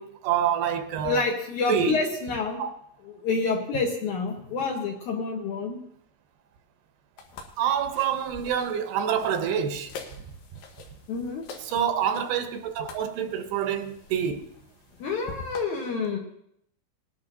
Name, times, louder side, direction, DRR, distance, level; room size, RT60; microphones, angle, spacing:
voice 1, 0.0-1.2 1.7-2.0 2.6-2.7 7.6-9.9 11.7-14.4, right 8 dB, 80° right, 2.8 m, -27 dB
voice 2, 1.0-2.6 3.0-5.8 11.1-11.4 15.0-16.2, left 4 dB, 65° left, 2.2 m, -28 dB
sound 1, 7.2-15.6, left 4 dB, 85° left, 3.4 m, -46 dB
20.5 x 11.0 x 2.7 m
omnidirectional pair, 4.6 m